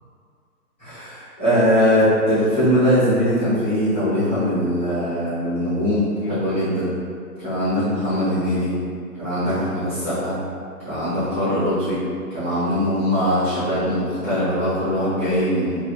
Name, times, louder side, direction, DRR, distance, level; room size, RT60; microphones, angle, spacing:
voice 1, 0.8-6.9 7.4-8.7 9.2-10.4 10.8-12.0 12.3-15.8, equal, 10° left, -22 dB, 0.6 m, -21 dB
2.8 x 2.4 x 2.8 m, 2.3 s
hypercardioid pair, 155°, 47 cm